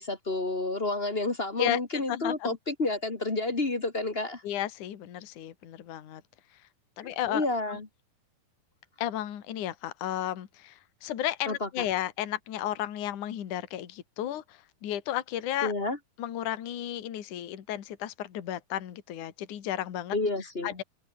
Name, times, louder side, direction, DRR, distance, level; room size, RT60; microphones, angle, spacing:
voice 1, 0.0-4.4 7.0-7.9 11.4-11.8 15.6-16.0 20.1-20.7, left 2 dB, 25° left, 1.2 m, -30 dB
voice 2, 1.6-2.6 4.4-6.2 7.0-7.8 9.0-15.7 16.2-20.2 20.6-20.8, left 12 dB, 55° left, 3.2 m, -33 dB
open air
omnidirectional pair, 4.5 m